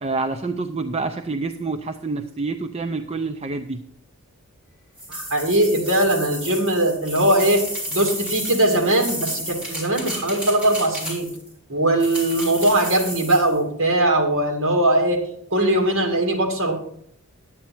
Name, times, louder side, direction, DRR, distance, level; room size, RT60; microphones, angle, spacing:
voice 1, 0.0-3.8, right 3 dB, 25° right, 6 dB, 0.5 m, -27 dB
sound 1, 5.0-11.5 12.0-13.5, equal, 5° right, 3.3 m, -32 dB
voice 2, 5.1-7.6 7.9-11.3 11.7-15.2 15.5-16.7, right 1 dB, 60° right, 2 dB, 2.3 m, -20 dB
10.5 x 8.7 x 4.4 m, 0.68 s
head